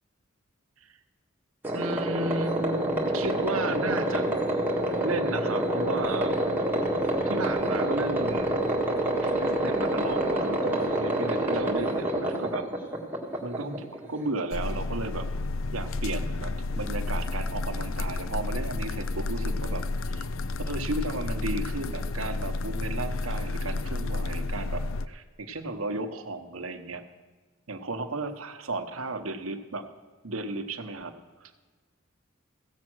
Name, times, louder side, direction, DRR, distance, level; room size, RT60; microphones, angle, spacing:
sound 1, 1.6-14.3, right 1 dB, 10° right, 1.8 m, -27 dB
voice 1, 1.7-4.4 5.0-6.3 7.2-8.5 9.2-12.6 13.4-15.3 15.7-19.8 20.1-20.2 20.7-27.0 27.7-29.8 30.2-31.1 31.4-31.5, right 2 dB, 90° right, 7 dB, 1.0 m, -34 dB
sound 2, 14.5-25.1, left 2 dB, 70° left, 0.4 m, -31 dB
16.0 x 7.5 x 6.2 m, 1.4 s
head